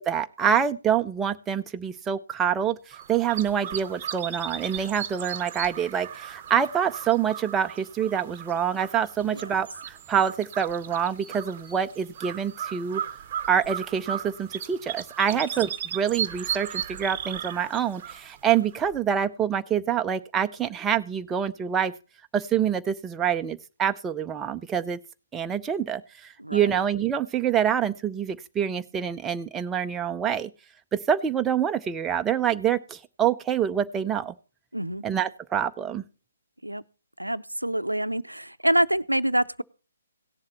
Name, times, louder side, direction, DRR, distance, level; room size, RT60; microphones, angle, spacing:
voice 1, 0.0-2.8 3.1-13.0 13.5-21.9 22.3-25.0 25.3-26.0 26.5-30.5 30.9-34.3 35.0-36.0, right 8 dB, 10° right, 8 dB, 0.6 m, -26 dB
sound 1, 2.9-19.0, right 9 dB, 30° right, 1.0 m, -36 dB
voice 2, 9.2-9.6 15.3-15.5 26.4-26.6 34.7-35.0 36.6-36.8 37.2-39.6, right 1 dB, 90° right, 14 dB, 0.6 m, -26 dB
18.0 x 7.4 x 3.0 m, 0.35 s
figure-of-eight pair, 135°, 0 cm